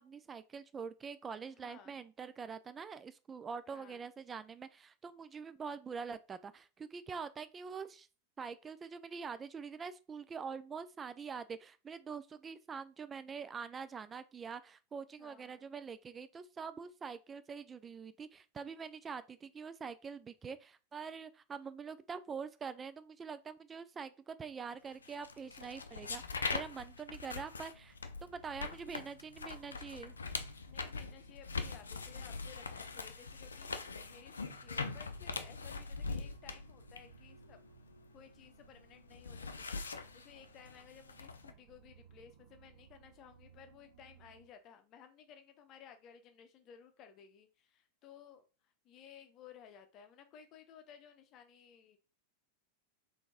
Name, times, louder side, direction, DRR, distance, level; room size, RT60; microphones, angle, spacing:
voice 1, 0.0-8.1 8.4-26.2 26.5-30.1, right 6 dB, 20° right, 0.3 m, -45 dB
voice 2, 1.4-1.9 3.7-4.0 15.2-15.7 30.7-37.6 38.1-52.0, left 8 dB, 35° left, 0.8 m, -58 dB
sound 1, 25.0-38.5 38.8-41.5, left 4 dB, 75° left, 0.4 m, -42 dB
sound 2, 27.8-44.5, right 7 dB, 55° right, 0.8 m, -63 dB
3.8 x 3.6 x 3.6 m
figure-of-eight pair, 90°, 0 cm